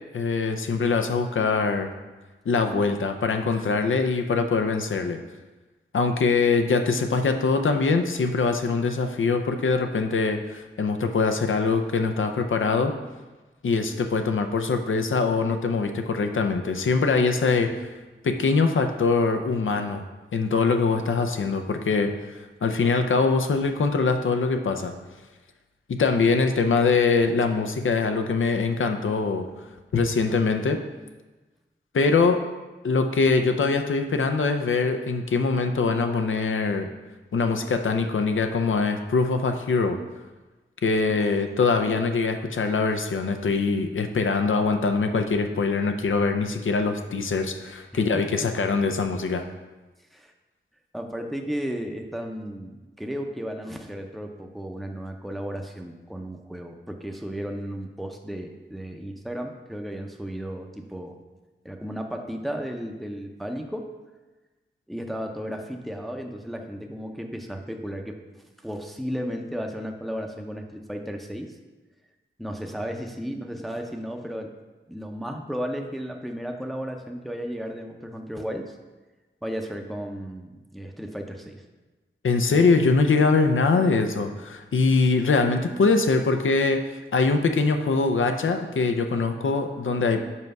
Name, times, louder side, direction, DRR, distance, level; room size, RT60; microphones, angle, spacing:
voice 1, 0.1-1.9 2.5-5.2 5.9-12.9 13.6-17.9 18.2-20.0 20.3-22.1 22.6-24.9 25.9-29.5 29.9-30.8 31.9-32.4 32.8-36.9 37.3-40.0 40.8-49.4 82.2-90.2, left 4 dB, 85° left, 6 dB, 0.6 m, -23 dB
voice 2, 47.9-48.5 50.1-50.3 50.9-61.2 61.6-63.9 64.9-68.2 68.6-71.6 72.4-74.5 74.9-78.8 79.4-81.6, equal, ahead, 3 dB, 0.6 m, -34 dB
5.7 x 4.6 x 5.3 m, 1.2 s
wide cardioid pair, 75°, 20 cm